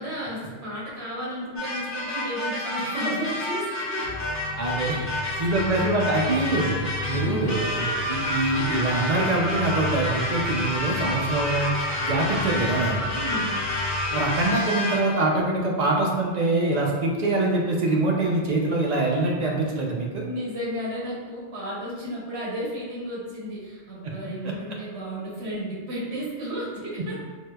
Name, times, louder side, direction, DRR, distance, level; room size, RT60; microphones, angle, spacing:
voice 1, 0.0-4.0 4.8-5.1 5.5-5.8 7.1-7.5 13.1-13.6 20.2-27.2, equal, 75° right, -6 dB, 1.2 m, -33 dB
sound 1, 1.6-15.2, left 1 dB, 20° left, 0.5 m, -29 dB
sound 2, 4.0-14.3, left 5 dB, 75° left, 0.8 m, -35 dB
voice 2, 4.6-5.0 5.4-6.8 7.1-13.0 14.1-20.2 24.0-24.1 24.4-24.5, right 2 dB, 55° right, -1 dB, 0.4 m, -24 dB
4.3 x 2.1 x 2.2 m, 1.4 s
omnidirectional pair, 1.1 m